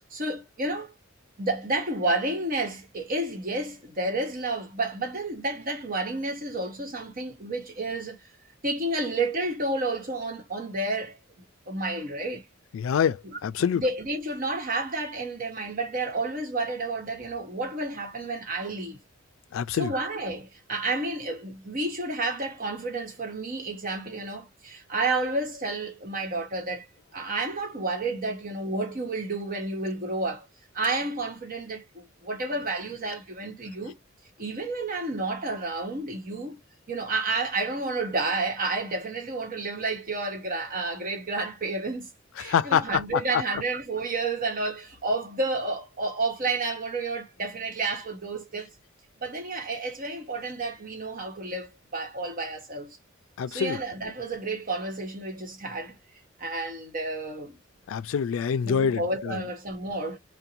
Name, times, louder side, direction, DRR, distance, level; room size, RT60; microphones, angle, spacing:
voice 1, 0.1-0.9 1.4-8.2 8.6-11.2 11.7-12.4 13.3-19.0 19.7-26.8 27.1-30.5 30.7-34.0 34.4-36.6 36.9-42.1 42.4-48.7 49.2-53.0 53.5-55.9 56.4-57.6 58.6-60.2, right 2 dB, 45° right, 1.1 m, -30 dB
voice 2, 12.7-13.8 19.5-19.9 42.4-43.0 53.4-53.8 57.9-59.4, left 7 dB, 75° left, 0.3 m, -26 dB
2.6 x 2.2 x 2.8 m
head